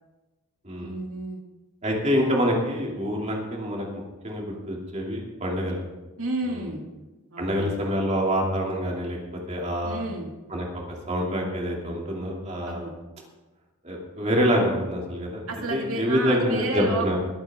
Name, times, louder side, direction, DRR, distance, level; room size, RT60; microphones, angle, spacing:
voice 1, 0.8-1.4 6.2-6.8 7.3-7.8 9.8-10.3 12.7-12.9 15.5-17.2, right 2 dB, 70° right, 1 dB, 2.3 m, -31 dB
voice 2, 1.8-3.9 4.2-5.8 7.4-9.2 9.5-10.0 10.5-10.7 11.1-12.9 13.8-15.4 15.7-17.2, equal, 30° right, -1 dB, 2.6 m, -26 dB
21.5 x 8.8 x 3.6 m, 1.1 s
head